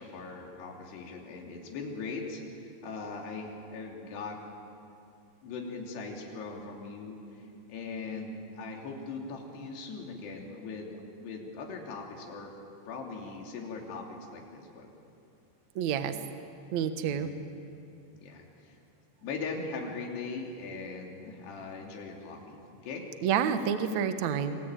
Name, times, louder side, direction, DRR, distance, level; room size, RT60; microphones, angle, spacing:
voice 1, 0.0-4.4 5.4-12.5 12.9-14.9 17.0-17.4 18.1-18.8 19.2-23.1, left 4 dB, 65° left, 1 dB, 5.0 m, -40 dB
voice 2, 15.7-16.1 16.7-17.3 23.2-24.6, right 8 dB, 75° right, 8 dB, 1.6 m, -28 dB
26.5 x 24.5 x 9.0 m, 2.6 s
omnidirectional pair, 5.3 m